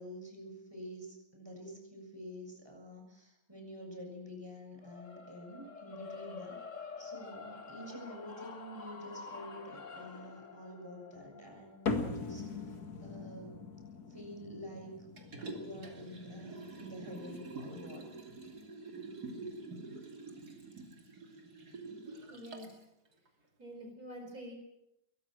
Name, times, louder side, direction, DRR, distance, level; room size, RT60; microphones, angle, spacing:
voice 1, 0.0-6.6 7.0-12.8 13.0-13.6 13.9-15.0 15.3-18.0, equal, 15° right, 1 dB, 7.1 m, -48 dB
sound 1, 4.8-15.0, left 5 dB, 55° left, 2.2 m, -49 dB
sound 2, 11.9-18.6, left 3 dB, 85° left, 2.6 m, -42 dB
Liquid, 15.2-22.8 23.3-23.4, right 3 dB, 90° right, 3.4 m, -46 dB
voice 2, 22.3-22.7 23.6-24.5, equal, 70° right, 3 dB, 5.0 m, -46 dB
22.0 x 19.0 x 7.7 m, 0.83 s
omnidirectional pair, 1.6 m